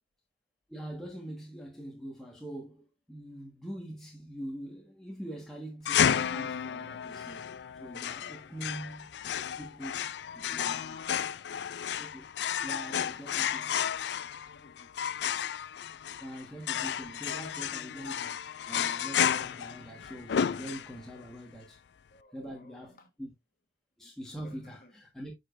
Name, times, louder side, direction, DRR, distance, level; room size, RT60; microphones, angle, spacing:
voice 1, 0.7-7.4 7.8-9.1 9.6-11.0 12.0-12.3 12.6-14.1 16.2-21.8 22.3-23.3 24.0-25.3, right 1 dB, 5° left, 1.5 m, -43 dB
sound 1, 5.8-21.2, left 8 dB, 75° left, 0.4 m, -32 dB
voice 2, 10.2-11.5 12.9-13.3 13.8-15.3 22.1-23.1 24.4-24.9, left 1 dB, 50° left, 1.4 m, -59 dB
9.8 x 5.1 x 2.6 m
head